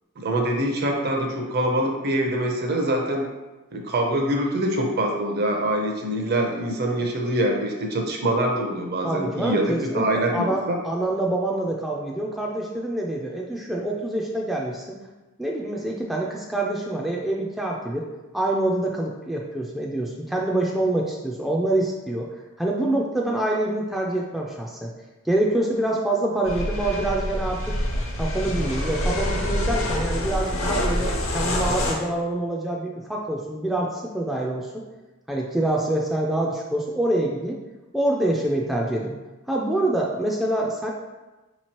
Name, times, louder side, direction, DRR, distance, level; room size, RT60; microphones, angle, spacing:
voice 1, 0.2-3.3 3.7-10.8, right 1 dB, 50° right, 2 dB, 0.6 m, -24 dB
voice 2, 9.0-15.0 15.4-18.1 18.3-22.3 22.6-24.9 25.2-27.8 28.1-34.8 35.3-37.6 37.9-39.2 39.5-40.9, right 1 dB, ahead, -2 dB, 0.3 m, -26 dB
sound 1, 26.5-31.9, left 1 dB, 70° left, 0.7 m, -26 dB
4.8 x 3.0 x 2.9 m, 1.1 s
head